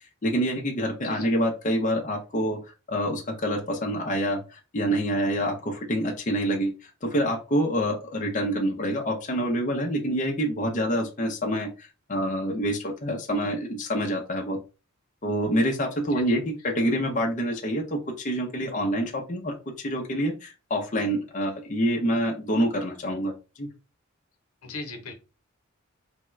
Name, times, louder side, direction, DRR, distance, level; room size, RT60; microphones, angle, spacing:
voice 1, 0.2-2.6 2.9-6.7 7.0-14.6 15.2-19.5 19.8-23.3 23.6-23.7, equal, 35° left, 1 dB, 0.6 m, -26 dB
voice 2, 24.6-25.1, left 3 dB, 90° left, 4 dB, 0.9 m, -38 dB
3.4 x 2.3 x 3.1 m, 0.30 s
head